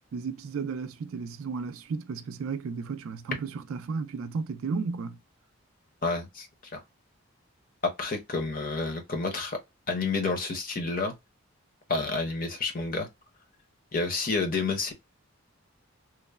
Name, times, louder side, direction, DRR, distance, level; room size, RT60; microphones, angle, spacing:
voice 1, 0.1-5.2, right 5 dB, 75° right, 0.3 m, -34 dB
voice 2, 6.0-6.5 7.8-9.6 9.9-11.1 11.9-13.1 13.9-14.9, left 3 dB, 40° left, 0.7 m, -29 dB
3.0 x 2.1 x 2.2 m
head